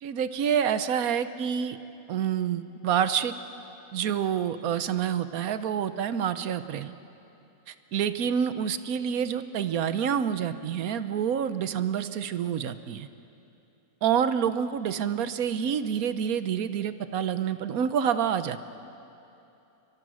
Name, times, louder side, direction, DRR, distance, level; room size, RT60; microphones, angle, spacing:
voice 1, 0.0-1.8 2.1-3.3 3.9-6.9 7.7-13.1 14.0-18.6, right 8 dB, 90° right, 12 dB, 1.3 m, -27 dB
30.0 x 23.5 x 6.3 m, 2.9 s
omnidirectional pair, 1.5 m